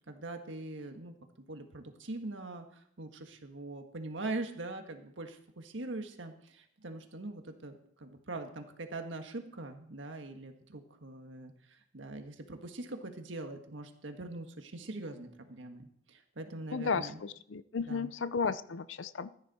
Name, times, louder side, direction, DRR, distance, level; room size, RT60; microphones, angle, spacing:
voice 1, 0.1-17.2 17.8-18.1, right 2 dB, 85° right, 5 dB, 1.6 m, -42 dB
voice 2, 16.7-19.3, left 5 dB, 85° left, 15 dB, 0.6 m, -34 dB
14.0 x 9.8 x 4.2 m, 0.68 s
head